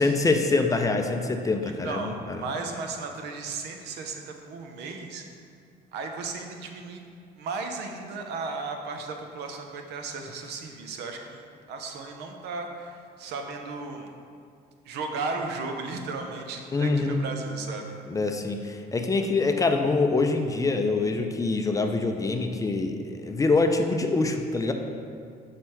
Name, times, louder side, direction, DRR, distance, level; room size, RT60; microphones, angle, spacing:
voice 1, 0.0-2.5 16.7-17.2 18.1-24.7, left 3 dB, 20° left, 5 dB, 0.4 m, -25 dB
voice 2, 1.6-5.2 5.9-7.0 7.4-11.4 11.7-14.1 14.9-17.9, right 4 dB, 80° right, 4 dB, 0.7 m, -35 dB
6.1 x 3.3 x 5.7 m, 2.3 s
cardioid pair, 110°, 17 cm